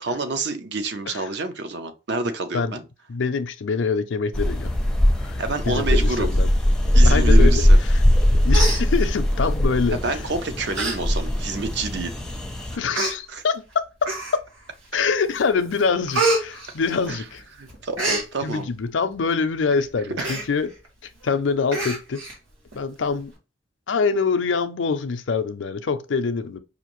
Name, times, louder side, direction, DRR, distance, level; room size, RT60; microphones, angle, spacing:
voice 1, 0.0-2.8 5.4-6.3 6.9-7.8 10.0-12.1 13.3-13.4 17.1-17.2 17.6-18.7 20.2-20.3, right 3 dB, 60° right, 0.6 m, -28 dB
voice 2, 3.1-4.7 5.2-5.4 5.7-6.5 7.0-7.7 7.9-8.0 8.4-10.0 12.8-14.4 14.9-17.4 18.4-20.7 21.2-22.2 22.7-23.3 23.9-26.6, left 5 dB, 75° left, 0.5 m, -24 dB
sound 1, 4.3-12.8, left 1 dB, 5° left, 0.5 m, -19 dB
Human voice, 8.0-8.2 8.5-9.4 10.2-10.3 10.7-11.0 11.3-11.4 12.2-12.3 12.9-13.1 14.0-14.6 15.1-15.4 15.7-17.4 17.7-18.3 20.2-20.5 20.8-20.9 21.2-21.3 21.7-22.4 22.7-22.8, right 2 dB, 85° right, 1.5 m, -26 dB
5.0 x 2.6 x 3.0 m
head